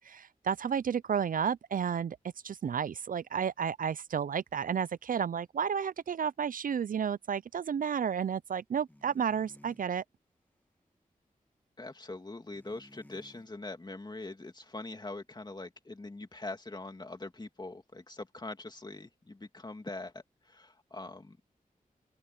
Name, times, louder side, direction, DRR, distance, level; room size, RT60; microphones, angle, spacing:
voice 1, 0.0-2.2 2.4-10.0, right 7 dB, 70° right, 0.4 m, -32 dB
sound 1, 8.9-9.9 12.5-13.5, left 1 dB, 10° left, 1.6 m, -57 dB
voice 2, 11.8-21.4, left 2 dB, 30° left, 2.6 m, -43 dB
open air
wide cardioid pair, 105°, 15 cm